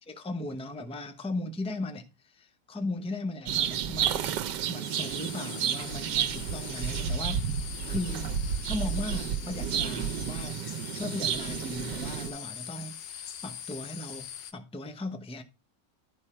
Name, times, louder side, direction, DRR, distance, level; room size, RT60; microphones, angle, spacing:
voice 1, 0.0-4.4 4.7-7.4 7.9-10.6 10.9-14.3 14.5-15.4, left 2 dB, 5° left, 0.4 m, -37 dB
sound 1, 3.5-12.3, right 8 dB, 80° right, 1.4 m, -31 dB
sound 2, 4.8-14.5, left 9 dB, 90° left, 1.5 m, -42 dB
12.0 x 5.2 x 4.4 m
omnidirectional pair, 1.9 m